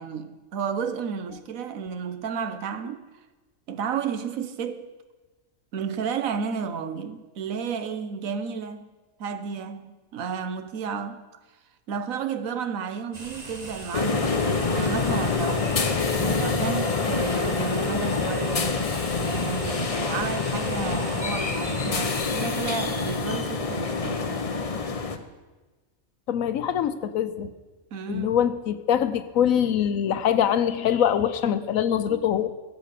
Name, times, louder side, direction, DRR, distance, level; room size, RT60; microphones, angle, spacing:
voice 1, 0.0-3.0 3.7-4.9 5.7-8.9 9.2-11.2 11.9-18.8 19.2-24.4 27.9-28.4, right 6 dB, 80° right, 1.3 m, -32 dB
sound 1, 13.1-22.1, right 2 dB, 30° right, 1.4 m, -42 dB
sound 2, 13.9-25.2, left 4 dB, 35° left, 0.7 m, -26 dB
voice 2, 26.3-27.5 28.1-32.5, left 9 dB, 80° left, 1.2 m, -23 dB
16.5 x 7.5 x 6.7 m
omnidirectional pair, 1.4 m